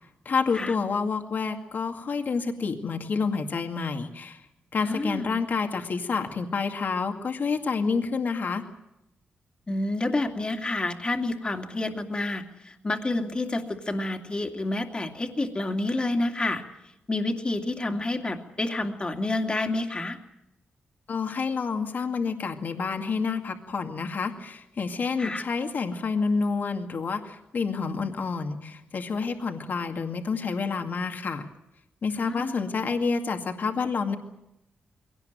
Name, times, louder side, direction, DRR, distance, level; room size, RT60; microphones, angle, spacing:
voice 1, 0.3-4.4 4.7-8.6 21.1-31.4 32.0-34.2, left 5 dB, 55° left, 4 dB, 2.2 m, -28 dB
voice 2, 4.8-5.3 9.7-16.6 17.1-20.2 25.2-25.4 32.1-32.5, left 2 dB, 25° left, 4 dB, 2.5 m, -29 dB
22.5 x 18.0 x 9.4 m, 0.88 s
cardioid pair, 95°, 4 cm